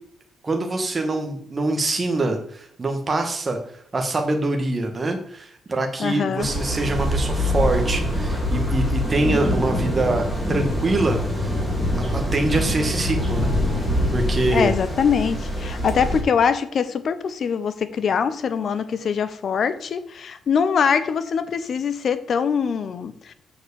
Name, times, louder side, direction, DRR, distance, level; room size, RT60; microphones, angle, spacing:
voice 1, 0.4-3.6 3.9-11.5 11.9-13.5 14.1-14.7, right 2 dB, 25° right, 1.1 m, -24 dB
voice 2, 6.0-6.5 14.5-23.3, left 6 dB, 50° left, 0.6 m, -23 dB
sound 1, 6.4-16.2, left 1 dB, 5° left, 2.0 m, -24 dB
6.6 x 4.5 x 6.8 m
cardioid pair, 145°, 0 cm